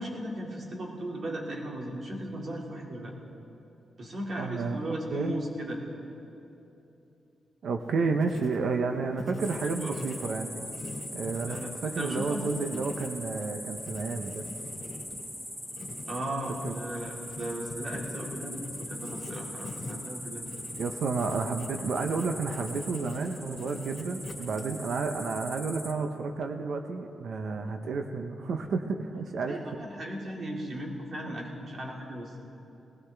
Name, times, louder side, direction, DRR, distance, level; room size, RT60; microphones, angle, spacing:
voice 1, 0.0-3.1 4.0-5.8 9.6-10.0 11.5-12.5 16.1-20.4 29.5-32.4, right 1 dB, 50° right, -1 dB, 2.3 m, -36 dB
voice 2, 4.4-5.3 7.6-10.7 11.1-11.6 11.8-14.4 16.6-16.7 20.8-29.6 31.3-31.5, right 4 dB, 70° right, 6 dB, 0.7 m, -31 dB
Writing, 7.8-25.0, left 3 dB, 45° left, 2.2 m, -44 dB
sound 1, 9.4-25.9, equal, 15° right, 1.5 m, -41 dB
20.0 x 16.0 x 3.4 m, 2.9 s
cardioid pair, 105°, 0 cm